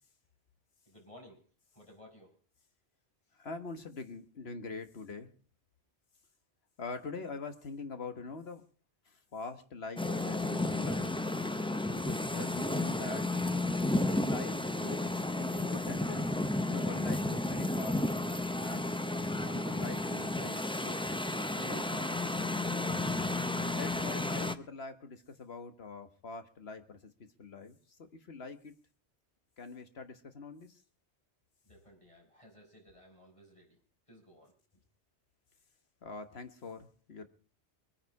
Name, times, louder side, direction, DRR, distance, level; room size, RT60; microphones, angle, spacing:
voice 1, 0.9-1.4 1.7-2.4 31.6-33.8 34.1-34.8, left 1 dB, 30° left, 0 dB, 5.7 m, -57 dB
voice 2, 3.4-5.3 6.8-8.6 9.0-11.1 11.9-13.3 14.0-16.3 16.6-18.0 18.6-19.0 19.5-21.1 21.5-22.2 23.6-27.1 27.4-28.7 29.6-30.8 36.0-37.3, left 4 dB, 65° left, 8 dB, 1.6 m, -44 dB
sound 1, 10.0-24.5, left 2 dB, 5° left, 0.4 m, -32 dB
22.5 x 9.8 x 4.7 m, 0.41 s
omnidirectional pair, 1.1 m